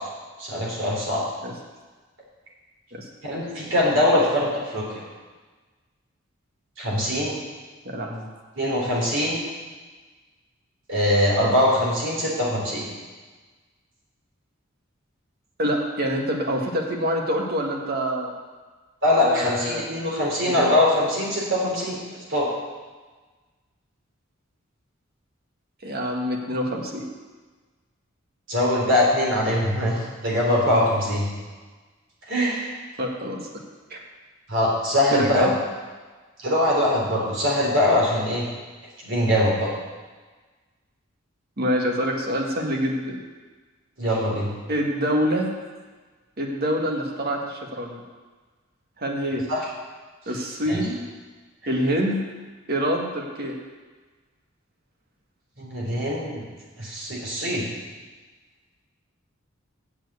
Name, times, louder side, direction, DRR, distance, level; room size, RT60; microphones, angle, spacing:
voice 1, 0.4-1.2 3.2-5.0 6.8-7.4 8.6-9.4 10.9-12.9 19.0-22.0 22.3-22.5 28.5-31.3 32.3-32.7 34.5-35.5 36.4-38.5 39.0-39.7 44.0-44.5 49.5-49.7 50.7-50.8 55.6-56.5 56.8-57.7, left 1 dB, 65° right, -4 dB, 3.5 m, -22 dB
voice 2, 7.8-8.3 15.6-18.3 19.2-19.8 25.8-27.1 33.0-33.4 33.9-34.0 35.1-35.5 41.6-43.2 44.7-45.5 46.4-48.0 49.0-49.4 50.3-51.1 51.7-52.2 52.7-53.5, equal, 50° right, 1 dB, 1.5 m, -26 dB
7.5 x 7.3 x 8.1 m, 1.3 s
head